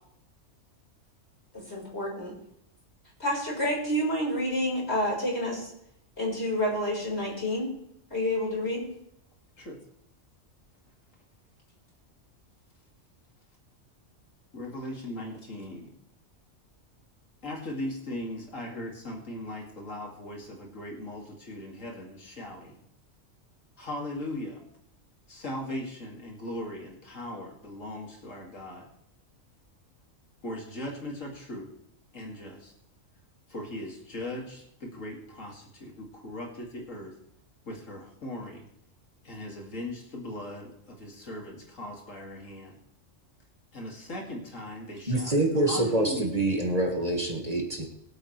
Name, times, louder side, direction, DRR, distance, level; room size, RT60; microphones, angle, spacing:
voice 1, 1.7-2.3 3.2-5.7 6.2-7.7 8.1-8.8, left 1 dB, 55° left, -3 dB, 5.0 m, -29 dB
voice 2, 14.5-16.0 17.4-22.8 23.8-24.6 25.3-28.9 30.4-31.7 32.1-32.7 33.5-37.1 37.7-38.6 39.2-42.8 43.7-46.3, left 1 dB, 90° left, 0 dB, 2.8 m, -39 dB
voice 3, 45.1-47.9, right 1 dB, 30° right, 2 dB, 1.9 m, -26 dB
23.0 x 8.2 x 3.3 m, 0.77 s
omnidirectional pair, 1.3 m